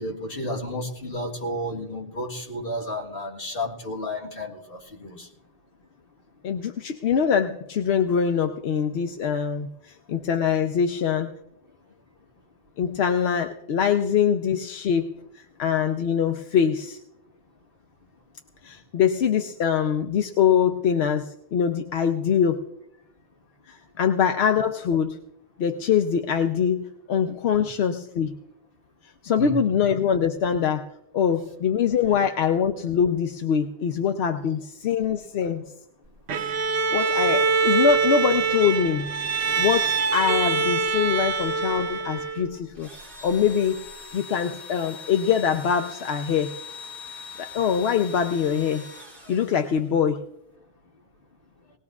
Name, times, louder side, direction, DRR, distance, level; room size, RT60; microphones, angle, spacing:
voice 1, 0.0-5.3 27.5-27.6 29.4-29.6, left 1 dB, 60° left, -1 dB, 2.0 m, -32 dB
voice 2, 6.4-11.3 12.8-17.0 18.6-22.7 23.7-25.2 25.6-28.3 29.2-30.9 31.1-35.7 36.9-39.1 39.6-42.9 43.2-43.8 44.1-46.6 47.4-48.8 49.3-50.3, left 7 dB, 85° left, 7 dB, 0.9 m, -23 dB
Bowed string instrument, 36.3-42.6, right 5 dB, 90° right, 1.0 m, -24 dB
Engine / Drill, 42.7-50.1, left 5 dB, ahead, 4.8 m, -42 dB
19.5 x 19.0 x 2.4 m, 0.84 s
omnidirectional pair, 1.0 m